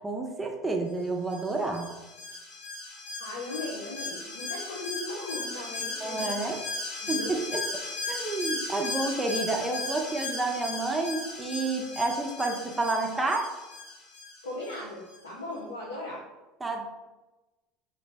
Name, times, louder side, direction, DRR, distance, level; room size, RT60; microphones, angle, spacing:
voice 1, 0.0-1.9 6.0-6.6 7.1-7.6 8.1-13.5 16.6-16.9, right 3 dB, 15° right, 2 dB, 0.4 m, -30 dB
Alarm, 1.3-14.8 15.1-15.2, left 3 dB, 65° left, 0.8 m, -37 dB
voice 2, 3.2-6.3 7.0-7.3 14.4-16.2, left 2 dB, 90° left, -4 dB, 0.5 m, -38 dB
2.6 x 2.0 x 3.3 m, 1.1 s
hypercardioid pair, 80°, 0 cm